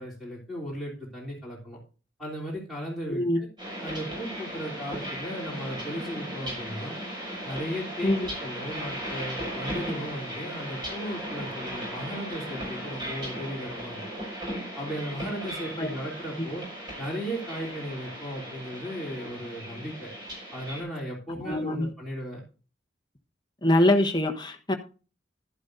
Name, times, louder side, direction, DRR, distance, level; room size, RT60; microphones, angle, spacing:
voice 1, 0.0-1.8 2.2-3.5 3.8-7.0 7.4-14.3 14.8-16.6 17.0-20.1 20.5-22.4, equal, ahead, 3.3 m, -36 dB
sound 1, 3.6-20.8, equal, 25° right, 6.1 m, -37 dB
voice 2, 21.4-21.9 23.6-24.7, left 1 dB, 25° left, 1.1 m, -23 dB
11.5 x 11.5 x 2.6 m
head